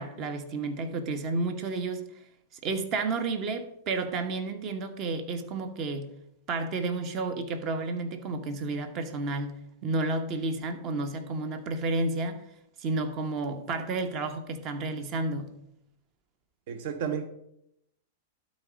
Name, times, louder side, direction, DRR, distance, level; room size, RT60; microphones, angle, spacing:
voice 1, 0.0-2.0 2.5-6.1 6.5-12.4 12.8-15.5, right 3 dB, 40° right, 1.1 m, -31 dB
voice 2, 16.7-17.3, right 7 dB, 60° right, 0.7 m, -32 dB
12.0 x 4.2 x 5.0 m
hypercardioid pair, 115°, 0 cm